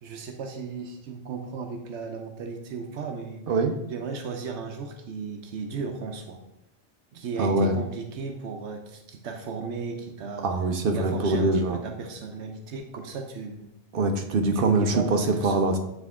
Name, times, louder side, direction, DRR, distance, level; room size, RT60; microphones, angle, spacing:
voice 1, 0.0-3.4 3.9-6.4 7.1-10.5 10.9-13.7 14.5-15.8, right 5 dB, 85° right, 4 dB, 1.0 m, -35 dB
voice 2, 7.4-7.7 10.4-11.8 13.9-15.8, right 2 dB, 60° right, 5 dB, 0.8 m, -23 dB
8.9 x 3.5 x 3.6 m, 0.87 s
omnidirectional pair, 1.1 m